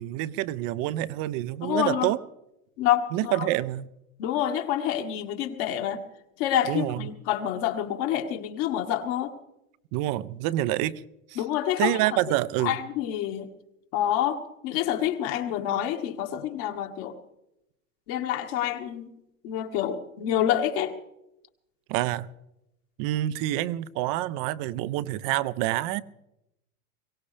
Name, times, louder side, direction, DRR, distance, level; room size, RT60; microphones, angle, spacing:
voice 1, 0.0-2.2 3.1-3.9 6.7-7.1 9.9-11.0 11.3-11.4 11.8-12.8 21.9-22.3 23.0-26.0, right 15 dB, 50° right, 16 dB, 0.8 m, -27 dB
voice 2, 1.6-2.1 2.8-3.5 4.2-6.0 6.4-9.3 11.4-12.0 12.6-13.5 13.9-17.2 18.1-19.1 19.4-20.9, left 11 dB, 55° left, 4 dB, 1.9 m, -27 dB
22.5 x 17.5 x 3.4 m, 0.88 s
hypercardioid pair, 100°, 42 cm